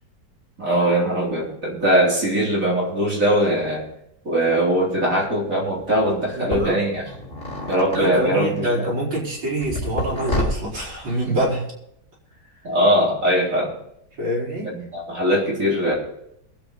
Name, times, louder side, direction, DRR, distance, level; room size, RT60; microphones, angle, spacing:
voice 1, 0.6-3.8 4.2-7.0 7.7-8.9 12.6-13.7 14.9-15.9, equal, 40° right, -4 dB, 4.1 m, -21 dB
sound 1, 5.7-5.8 6.5-8.8 9.6-11.5, left 1 dB, 30° left, 3.3 m, -29 dB
voice 2, 6.3-6.8 7.9-11.7 14.2-14.8, right 1 dB, 80° right, -4 dB, 5.2 m, -25 dB
22.5 x 8.2 x 4.1 m, 0.75 s
omnidirectional pair, 2.1 m